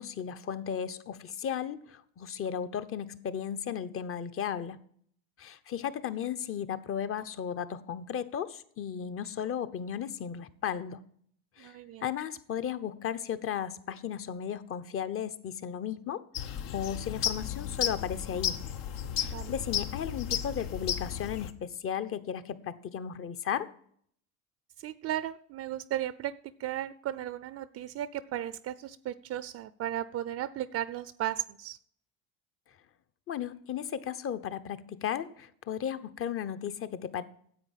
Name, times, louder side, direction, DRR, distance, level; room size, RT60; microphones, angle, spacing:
voice 1, 0.0-4.8 5.4-11.1 11.6-18.5 19.1-23.7 33.3-37.2, left 8 dB, 40° left, 1.0 m, -35 dB
voice 2, 11.6-12.0 19.3-19.5 24.8-26.3 26.6-31.8, right 12 dB, 45° right, 0.6 m, -35 dB
sound 1, 16.3-21.5, left 9 dB, 65° left, 1.1 m, -34 dB
10.0 x 8.1 x 7.5 m
supercardioid pair, 95°, 35 cm